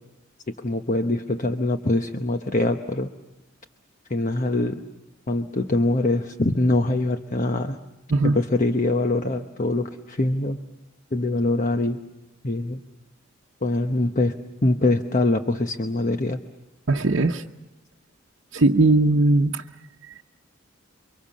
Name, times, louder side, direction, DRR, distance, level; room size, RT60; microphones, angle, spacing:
voice 1, 0.6-3.1 4.1-4.8 5.3-7.8 8.2-10.6 11.1-12.0 12.4-12.8 13.6-14.3 14.6-16.4, left 2 dB, 40° left, 6 dB, 1.0 m, -23 dB
voice 2, 16.9-17.4 18.5-19.6, right 2 dB, 70° right, -1 dB, 1.0 m, -19 dB
29.5 x 24.5 x 7.5 m, 0.97 s
head